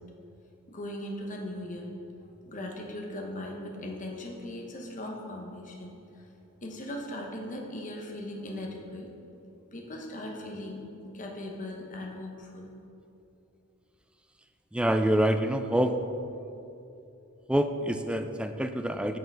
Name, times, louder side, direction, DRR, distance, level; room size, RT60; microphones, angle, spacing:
voice 1, 0.7-1.9 2.4-6.3 6.6-9.1 9.7-10.8 11.1-12.7, left 1 dB, 35° left, 0 dB, 1.0 m, -39 dB
voice 2, 14.7-16.0 17.5-19.2, right 1 dB, 5° right, 8 dB, 0.3 m, -26 dB
6.8 x 6.5 x 5.4 m, 2.8 s
head